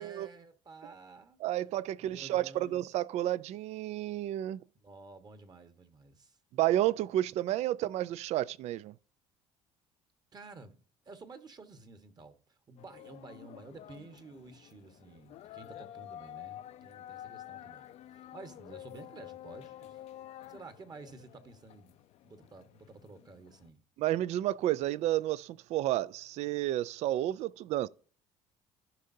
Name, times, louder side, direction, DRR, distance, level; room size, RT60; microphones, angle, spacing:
voice 1, 0.0-1.4 2.0-2.8 4.8-6.4 10.3-17.9 18.3-20.0 20.5-22.0 22.2-23.8, right 3 dB, 35° right, 1.4 m, -51 dB
voice 2, 1.4-4.6 6.5-8.9 24.0-27.9, right 13 dB, 65° right, 0.4 m, -31 dB
sound 1, 12.8-23.7, left 12 dB, 65° left, 0.5 m, -50 dB
15.0 x 5.3 x 2.7 m
cardioid pair, 95°, 12 cm